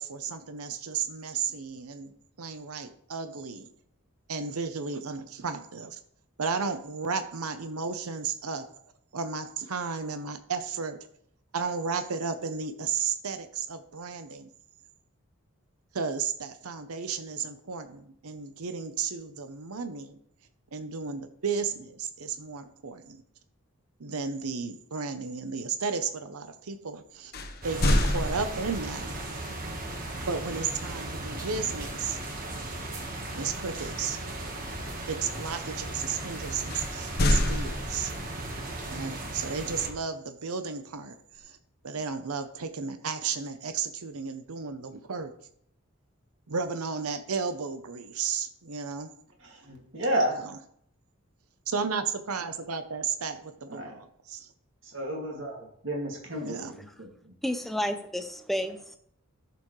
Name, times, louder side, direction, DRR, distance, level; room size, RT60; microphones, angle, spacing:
voice 1, 0.0-3.7 4.3-6.0 6.4-8.7 9.1-11.0 11.5-14.5 15.9-20.2 20.7-23.2 24.0-27.3 27.6-29.1 30.3-32.2 33.3-34.2 35.0-38.1 38.9-41.6 41.8-45.3 46.5-49.1 50.4-50.6 51.7-54.5 56.4-56.7, right 5 dB, 90° right, 9 dB, 0.8 m, -33 dB
sound 1, 27.3-29.0 31.7-32.0 32.4-32.7 36.7-38.4, left 1 dB, 45° left, 0.9 m, -27 dB
sound 2, 27.6-39.9, right 2 dB, 40° right, 1.4 m, -36 dB
voice 2, 49.4-50.4 53.7-53.9 54.8-57.3, right 1 dB, 55° right, 0 dB, 2.3 m, -32 dB
voice 3, 57.4-59.0, equal, ahead, 7 dB, 0.6 m, -31 dB
13.0 x 6.9 x 3.2 m, 0.68 s
head